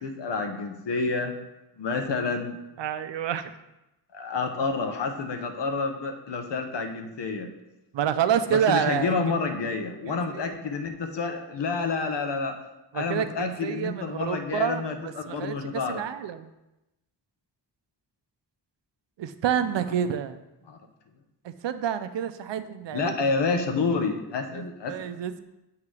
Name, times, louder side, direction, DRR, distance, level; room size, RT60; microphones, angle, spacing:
voice 1, 0.0-1.3 1.8-2.6 4.1-7.5 8.5-12.6 12.9-16.0 20.7-20.8 22.9-25.1, left 4 dB, 80° left, 5 dB, 0.8 m, -29 dB
voice 2, 2.8-3.5 7.9-9.1 10.1-10.5 12.9-15.5 15.9-16.5 19.2-20.4 21.4-23.1 24.5-25.4, right 9 dB, 85° right, 10 dB, 0.5 m, -28 dB
8.1 x 2.9 x 4.8 m, 0.96 s
wide cardioid pair, 135°, 42 cm